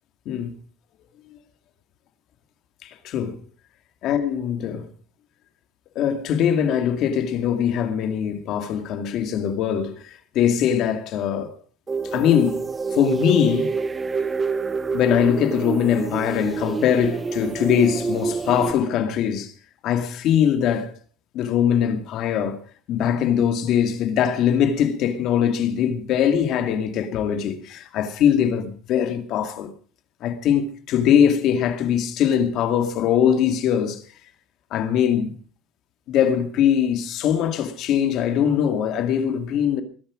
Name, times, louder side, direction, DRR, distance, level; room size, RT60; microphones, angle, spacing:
voice 1, 2.8-3.4 4.0-4.9 6.0-11.5 12.1-12.7 12.9-13.7 14.9-19.5 19.8-20.9 21.3-22.6 22.9-29.7 30.2-34.0 34.7-35.3 36.1-39.8, left 9 dB, 50° left, 2.2 m, -21 dB
sound 1, 11.9-18.7, right 4 dB, 15° right, 0.6 m, -27 dB
21.0 x 10.5 x 5.0 m
cardioid pair, 165°, 0 cm